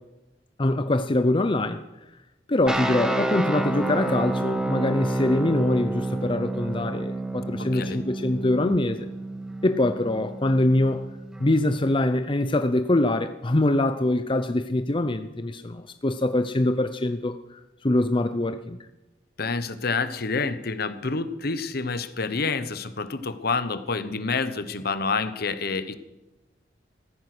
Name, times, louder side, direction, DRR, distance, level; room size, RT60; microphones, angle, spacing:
voice 1, 0.6-1.8 2.5-9.0 9.6-11.1 11.4-18.8, left 1 dB, 30° left, 8 dB, 0.7 m, -24 dB
sound 1, 2.7-11.6, right 1 dB, 5° right, 1.3 m, -29 dB
voice 2, 19.4-25.9, left 4 dB, 60° left, 12 dB, 1.1 m, -28 dB
16.0 x 14.5 x 6.2 m, 1.0 s
head